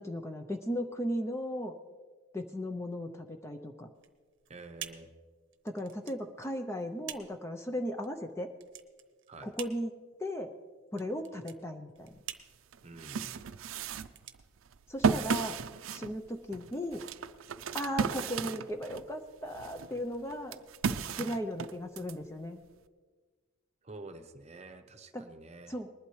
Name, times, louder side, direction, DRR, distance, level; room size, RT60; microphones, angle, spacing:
voice 1, 0.0-1.7 2.3-3.9 5.6-8.5 9.4-9.9 10.2-10.5 10.9-12.2 14.9-15.6 15.9-17.0 17.7-20.6 21.1-22.6 25.1-25.3 25.7-25.9, equal, 15° left, 6 dB, 0.5 m, -36 dB
sound 1, 3.9-15.3, right 11 dB, 60° right, 0.8 m, -49 dB
voice 2, 4.5-5.1 9.3-9.5 12.8-13.4 23.8-25.7, right 2 dB, 30° right, 7 dB, 0.8 m, -48 dB
sound 2, 12.2-12.3 12.7-19.1 19.5-22.1, right 6 dB, 80° right, 0.5 m, -34 dB
20.5 x 11.5 x 3.1 m, 1.5 s
head